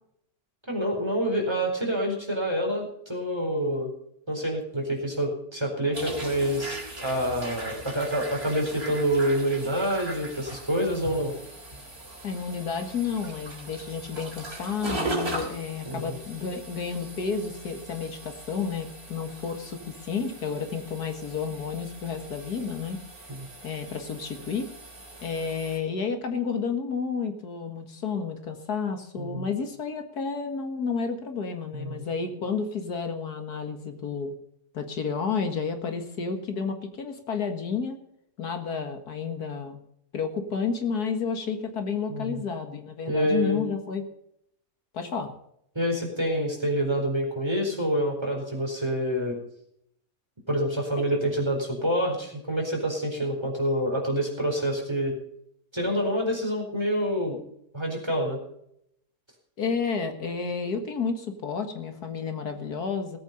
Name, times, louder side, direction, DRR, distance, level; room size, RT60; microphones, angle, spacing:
voice 1, 0.7-3.9 4.3-11.3 15.8-16.2 23.3-23.5 29.2-29.5 31.7-32.0 42.1-42.4 43.1-43.6 45.7-49.4 50.5-55.1 55.7-57.4 57.7-58.4, equal, 15° right, 0 dB, 4.4 m, -27 dB
sound 1, 5.9-25.8, right 1 dB, 40° right, 4.1 m, -39 dB
voice 2, 12.2-23.0 23.6-24.7 25.2-34.4 34.7-38.0 38.4-39.8 40.1-44.1 44.9-45.3 59.6-63.2, left 5 dB, 75° left, 6 dB, 2.2 m, -31 dB
18.5 x 8.7 x 5.4 m, 0.73 s
omnidirectional pair, 1.7 m